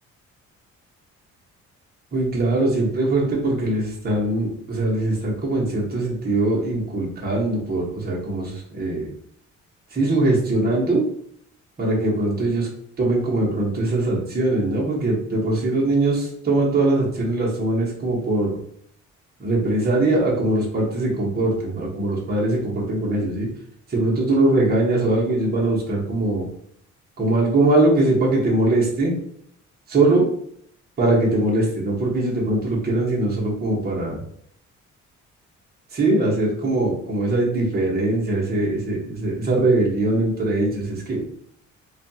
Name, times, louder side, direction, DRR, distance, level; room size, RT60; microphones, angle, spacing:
voice 1, 2.1-9.1 9.9-11.0 11.8-12.7 13.0-18.6 19.4-23.5 23.9-26.5 27.2-29.1 29.9-30.3 31.0-34.2 35.9-41.2, right 2 dB, 30° right, -5 dB, 1.0 m, -21 dB
2.5 x 2.3 x 2.7 m, 0.65 s
cardioid pair, 90°, 30 cm